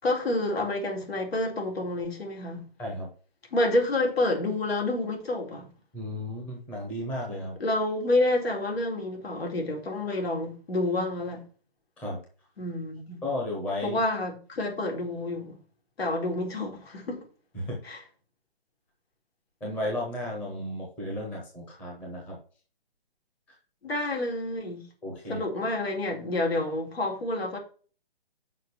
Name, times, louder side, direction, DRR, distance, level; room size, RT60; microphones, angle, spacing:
voice 1, 0.0-2.6 3.5-5.7 7.6-11.4 12.6-13.2 13.8-15.6 16.0-17.2 17.8-18.0 23.8-24.8 25.3-27.6, left 2 dB, 85° left, 4.2 m, -28 dB
voice 2, 5.9-7.6 12.0-12.2 13.2-14.0 17.5-17.8 19.6-22.4 25.0-25.4, left 1 dB, 5° left, 0.8 m, -34 dB
6.5 x 5.1 x 6.8 m
hypercardioid pair, 170°, 30 cm